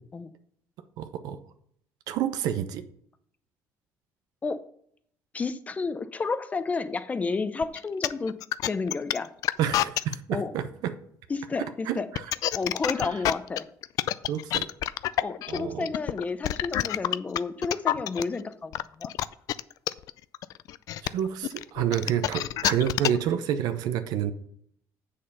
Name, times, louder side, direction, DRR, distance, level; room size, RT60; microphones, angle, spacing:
voice 1, 1.0-1.4 2.1-2.8 9.6-10.2 10.5-10.6 11.9-12.0 14.3-14.7 15.5-15.9 21.0-24.3, right 10 dB, 80° right, 10 dB, 0.8 m, -28 dB
voice 2, 5.3-8.4 8.7-9.3 10.3-10.5 11.3-12.1 12.5-13.7 15.2-19.1, left 4 dB, 20° left, 12 dB, 0.7 m, -31 dB
sound 1, 7.6-10.1 12.0-18.2 18.7-23.3, left 14 dB, 65° left, 0.4 m, -27 dB
7.6 x 6.7 x 5.5 m, 0.67 s
cardioid pair, 125°, 6 cm